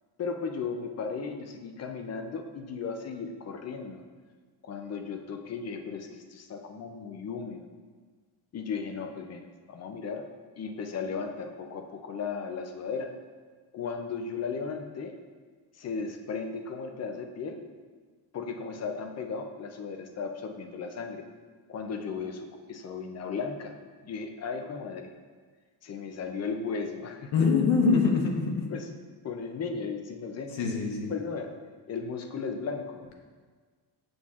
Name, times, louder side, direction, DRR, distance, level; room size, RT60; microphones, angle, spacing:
voice 1, 0.2-4.0 4.6-7.7 8.5-10.2 10.6-13.1 13.7-15.2 15.8-17.6 18.3-21.2 21.7-23.7 24.0-25.1 25.8-27.3 28.7-28.9 29.2-30.6 31.1-31.6 31.9-33.1, left 5 dB, 35° left, 5 dB, 0.5 m, -36 dB
voice 2, 27.3-28.7 30.5-31.1, left 4 dB, 70° left, 1 dB, 1.1 m, -24 dB
7.2 x 6.2 x 2.4 m, 1.5 s
cardioid pair, 145°, 47 cm